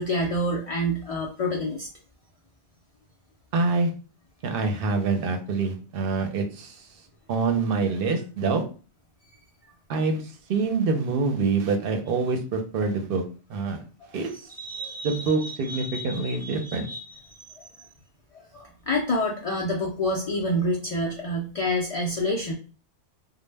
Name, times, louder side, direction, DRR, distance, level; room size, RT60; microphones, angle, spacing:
voice 1, 0.0-1.9 14.6-17.0 18.5-22.5, left 1 dB, 65° left, -1 dB, 0.3 m, -28 dB
voice 2, 3.5-3.9 4.4-6.8 7.3-8.6 9.9-10.2 10.5-13.2 13.5-13.8 14.1-14.3 15.0-16.9, right 4 dB, 65° right, 5 dB, 0.7 m, -25 dB
2.0 x 2.0 x 3.2 m, 0.37 s
omnidirectional pair, 1.1 m